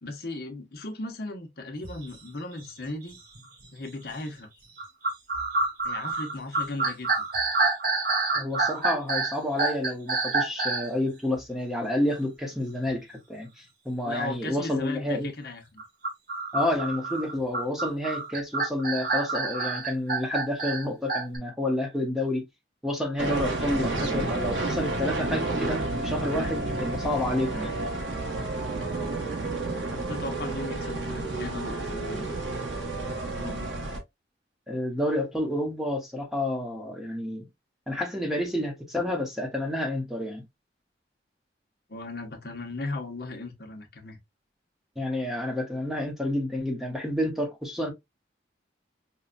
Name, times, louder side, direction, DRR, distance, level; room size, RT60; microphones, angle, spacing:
voice 1, 0.0-3.2 3.7-4.5 5.8-7.1 14.0-15.6 30.0-32.5 33.3-33.7 41.9-44.2, left 2 dB, 55° left, 1.0 m, -37 dB
sound 1, 1.8-2.0 2.6-2.7 3.3-3.7 4.8-10.9 15.8-21.4, right 3 dB, 50° right, 1.3 m, -28 dB
voice 2, 8.3-15.3 16.5-22.4 22.8-27.8 34.7-37.5 37.9-40.4 45.0-47.9, left 1 dB, ahead, 0.9 m, -29 dB
sound 2, 23.2-34.0, right 2 dB, 85° right, 1.2 m, -30 dB
5.5 x 2.2 x 2.5 m
head